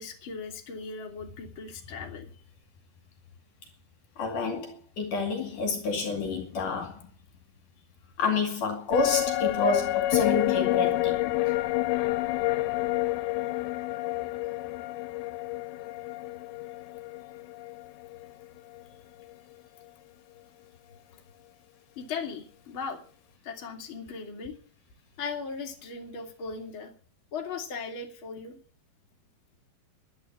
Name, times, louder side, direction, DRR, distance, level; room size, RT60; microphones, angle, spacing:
voice 1, 0.0-2.3 22.0-23.0 23.4-24.5 25.2-26.9 27.3-28.6, left 5 dB, 35° left, 3.3 m, -38 dB
voice 2, 4.2-7.1 8.2-11.2, left 3 dB, 60° left, 3.7 m, -29 dB
sound 1, 8.9-18.4 18.8-18.9, left 16 dB, 85° left, 2.8 m, -28 dB
11.5 x 10.5 x 9.7 m
omnidirectional pair, 4.3 m